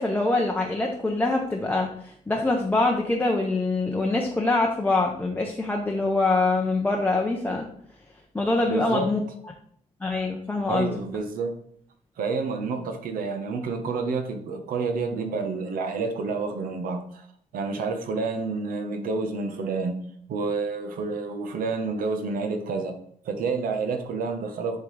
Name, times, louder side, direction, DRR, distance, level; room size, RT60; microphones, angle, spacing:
voice 1, 0.0-7.7 8.3-9.2 10.0-11.0, left 2 dB, 10° left, 0 dB, 0.6 m, -24 dB
voice 2, 8.7-9.1 10.7-11.6 12.2-17.3 17.5-20.0 20.3-23.0 23.2-24.8, right 4 dB, 90° right, 6 dB, 1.0 m, -29 dB
10.5 x 3.7 x 3.2 m, 0.64 s
wide cardioid pair, 175°, 14 cm